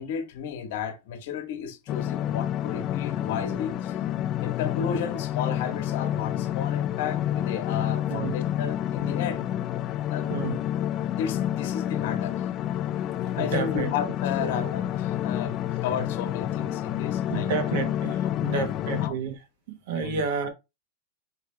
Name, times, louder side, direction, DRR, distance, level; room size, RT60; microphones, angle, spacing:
voice 1, 0.0-4.0 4.4-9.5 10.1-10.5 10.9-12.5 13.4-17.5 18.2-19.1 19.9-20.2, left 7 dB, 65° left, 1.2 m, -33 dB
sound 1, 1.9-19.1, left 11 dB, 35° left, 0.3 m, -29 dB
voice 2, 10.3-10.6 13.3-13.9 14.4-14.7 17.3-19.4 19.7-20.5, right 5 dB, 65° right, 1.2 m, -30 dB
4.8 x 3.2 x 3.2 m
supercardioid pair, 145°, 0 cm